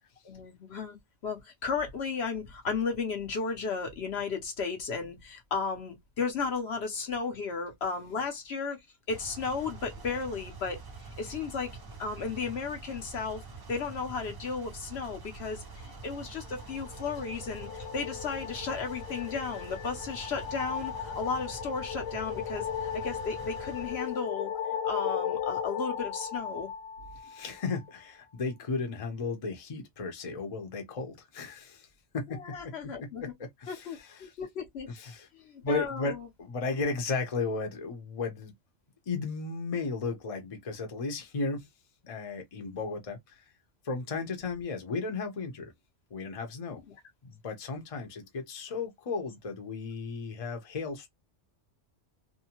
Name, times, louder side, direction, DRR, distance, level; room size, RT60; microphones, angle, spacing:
voice 1, 0.2-1.0 1.2-8.8 9.1-10.8 11.2-13.4 13.7-22.7 22.9-24.5 24.8-26.7 32.3-33.2 33.7-34.9 35.3-36.3, left 5 dB, 65° left, 1.0 m, -34 dB
sound 1, 9.1-24.2, right 3 dB, 40° right, 0.3 m, -46 dB
sound 2, 16.4-27.8, left 8 dB, 90° left, 0.9 m, -36 dB
voice 2, 27.2-31.9 32.1-34.3 34.9-35.3 35.6-38.5 39.1-41.7 42.0-43.4 43.8-45.7 46.1-46.8 47.2-51.1, left 4 dB, 35° left, 0.7 m, -35 dB
2.7 x 2.1 x 2.8 m
omnidirectional pair, 1.2 m